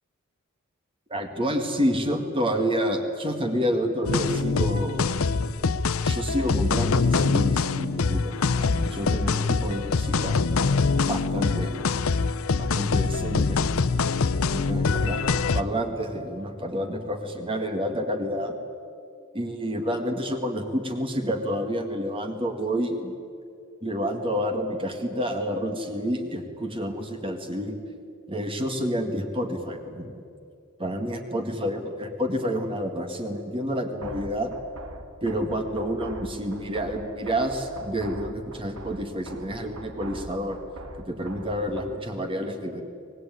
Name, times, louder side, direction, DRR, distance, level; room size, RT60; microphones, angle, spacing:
voice 1, 1.1-5.2 6.0-10.4 11.1-11.8 12.6-13.6 14.3-18.6 19.3-23.1 23.8-27.8 28.3-30.1 30.8-34.5 35.2-40.6 41.1-42.8, equal, 25° right, 4 dB, 1.9 m, -29 dB
Electronica Techno, 4.0-15.6, left 4 dB, 70° left, 0.7 m, -24 dB
sound 1, 34.0-42.0, right 2 dB, 85° right, 2.0 m, -42 dB
24.5 x 19.5 x 9.4 m, 2.4 s
head